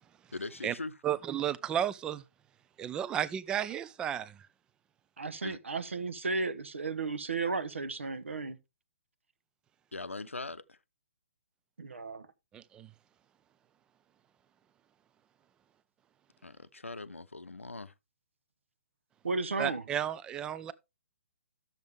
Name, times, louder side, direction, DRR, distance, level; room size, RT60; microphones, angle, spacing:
voice 1, 0.3-1.0 5.4-5.6 9.9-10.8 16.4-17.9, left 3 dB, 85° left, 0.7 m, -41 dB
voice 2, 1.0-2.2 2.8-4.3 12.5-12.9 19.6-20.7, right 10 dB, 10° right, 0.4 m, -33 dB
voice 3, 5.2-8.6 11.8-12.3 19.2-19.9, right 3 dB, 70° right, 1.1 m, -34 dB
11.5 x 7.1 x 3.5 m
figure-of-eight pair, 130°, 7 cm